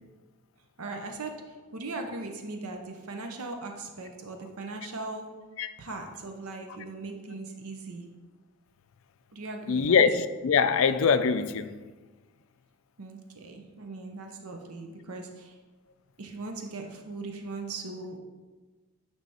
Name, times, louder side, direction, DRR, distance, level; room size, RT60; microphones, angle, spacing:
voice 1, 0.8-5.3 5.8-8.0 9.3-10.0 13.0-15.6 16.2-18.2, right 3 dB, 75° right, 0.7 m, -39 dB
voice 2, 9.7-11.7, left 6 dB, 65° left, 0.4 m, -23 dB
9.2 x 3.4 x 4.2 m
head